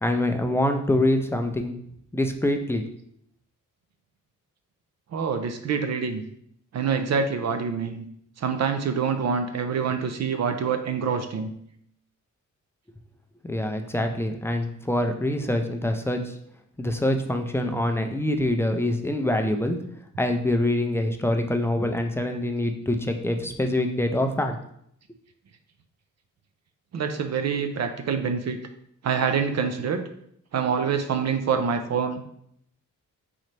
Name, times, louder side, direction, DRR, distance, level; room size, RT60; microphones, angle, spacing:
voice 1, 0.0-1.8 2.1-2.8 13.4-16.3 16.8-19.8 20.2-24.6, left 1 dB, 10° left, 5 dB, 0.3 m, -25 dB
voice 2, 5.1-6.2 6.7-8.0 8.4-11.5 26.9-28.6 29.0-30.0 30.5-32.2, right 6 dB, 55° right, 7 dB, 0.5 m, -26 dB
4.2 x 3.9 x 3.2 m, 0.70 s
wide cardioid pair, 130°, 32 cm